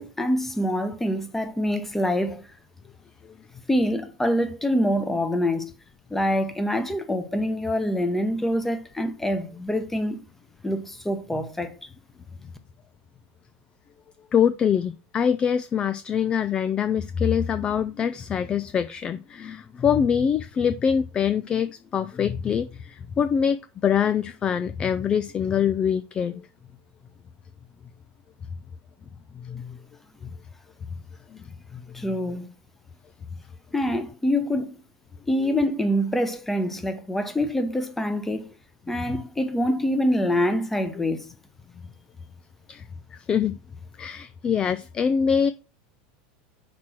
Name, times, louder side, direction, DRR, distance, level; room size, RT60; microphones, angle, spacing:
voice 1, 0.0-2.4 3.7-5.7 6.1-10.2 10.6-11.7 31.9-32.5 33.7-34.7 35.3-38.5 38.9-41.3, equal, 5° left, 1.0 m, -25 dB
voice 2, 14.3-26.4 29.4-29.8 31.7-31.8 39.0-39.2 42.7-42.8 43.3-43.5 44.0-45.5, left 7 dB, 25° left, 0.3 m, -24 dB
6.0 x 4.4 x 6.1 m
supercardioid pair, 135°, 4 cm